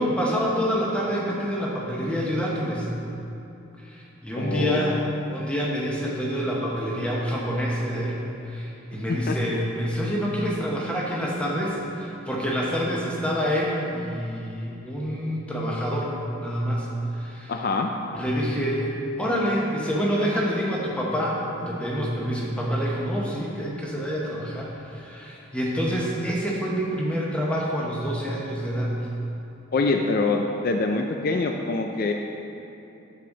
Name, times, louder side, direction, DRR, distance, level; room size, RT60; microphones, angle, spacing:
voice 1, 0.0-2.9 3.8-5.0 5.3-16.1 16.4-16.9 17.1-17.5 18.1-28.9, equal, 5° left, -4 dB, 1.1 m, -27 dB
voice 2, 4.4-5.0 9.1-9.4 17.5-17.9 29.7-32.1, left 3 dB, 45° left, 3 dB, 0.4 m, -25 dB
9.6 x 7.7 x 3.9 m, 2.9 s
head